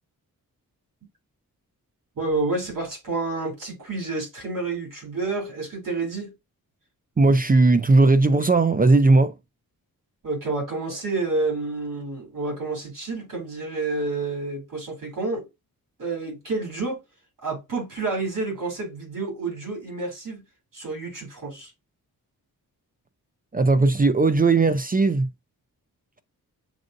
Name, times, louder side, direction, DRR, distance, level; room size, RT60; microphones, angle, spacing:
voice 1, 2.2-6.3 10.2-15.5 16.0-17.0 17.4-20.4 20.7-21.7, right 3 dB, 60° right, 3.1 m, -29 dB
voice 2, 7.2-9.3 23.5-25.3, right 3 dB, 25° right, 0.4 m, -18 dB
7.5 x 2.6 x 2.5 m
cardioid pair, 80°, 36 cm